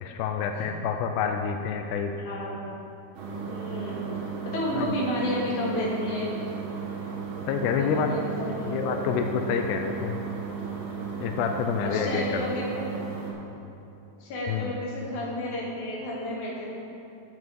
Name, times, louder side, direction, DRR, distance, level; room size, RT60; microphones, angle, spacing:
voice 1, 0.0-2.1 4.8-4.9 7.5-8.4 8.6-10.2 11.2-12.4 14.5-14.7, left 6 dB, 90° left, 5 dB, 2.7 m, -28 dB
voice 2, 2.1-2.7 3.4-4.1 4.4-6.3 7.7-8.9 11.8-12.9 14.2-16.7, left 1 dB, 55° left, -5 dB, 3.2 m, -31 dB
sound 1, 3.1-13.3, right 6 dB, 65° right, 2.9 m, -35 dB
9.2 x 7.8 x 6.1 m, 2.8 s
omnidirectional pair, 4.6 m